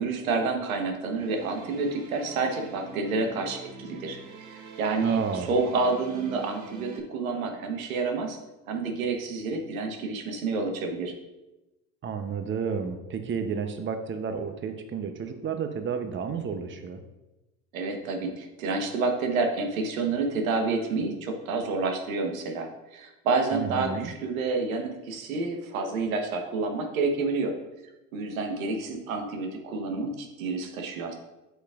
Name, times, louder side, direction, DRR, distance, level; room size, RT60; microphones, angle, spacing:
voice 1, 0.0-4.2 4.5-8.4 8.7-11.1 17.7-27.5 28.1-31.1, right 3 dB, 85° right, 4 dB, 1.2 m, -29 dB
sound 1, 1.1-7.0, right 3 dB, 45° right, 1.4 m, -45 dB
voice 2, 5.0-5.5 12.0-17.0 23.5-24.1, right 6 dB, 30° right, 7 dB, 0.8 m, -31 dB
8.1 x 5.8 x 2.5 m, 0.99 s
hypercardioid pair, 75°, 40 cm